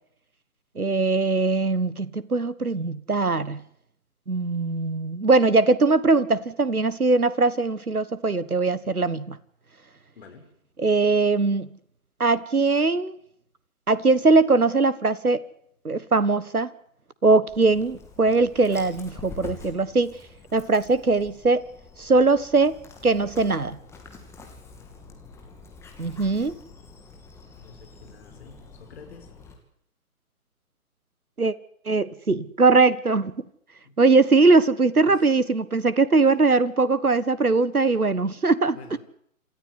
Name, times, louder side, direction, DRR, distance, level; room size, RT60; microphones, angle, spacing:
voice 1, 0.7-3.6 4.3-9.4 10.8-11.7 12.2-13.2 13.9-15.4 15.8-16.7 17.2-20.2 20.5-21.6 22.0-22.8 23.0-23.8 26.0-26.6 31.4-31.5 31.8-33.3 34.0-39.0, right 3 dB, 90° right, 1.4 m, -21 dB
voice 2, 10.2-10.5 27.6-29.3 33.8-34.0 35.1-35.2 38.7-39.0, left 4 dB, 45° left, 5.7 m, -48 dB
Dog, 17.5-29.5, left 4 dB, 5° left, 2.7 m, -46 dB
27.5 x 14.0 x 9.8 m
figure-of-eight pair, 135°, 43 cm